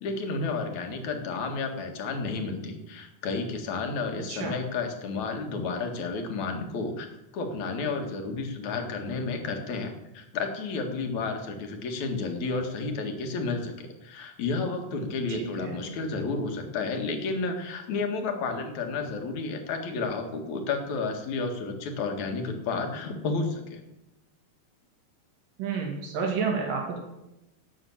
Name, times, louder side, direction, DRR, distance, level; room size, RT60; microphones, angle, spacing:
voice 1, 0.0-7.1 7.3-23.8, left 4 dB, 65° left, 4 dB, 3.1 m, -31 dB
voice 2, 4.3-4.6 15.3-15.8 25.6-27.0, right 5 dB, 90° right, 1 dB, 4.1 m, -30 dB
12.0 x 8.9 x 8.6 m, 0.93 s
omnidirectional pair, 3.8 m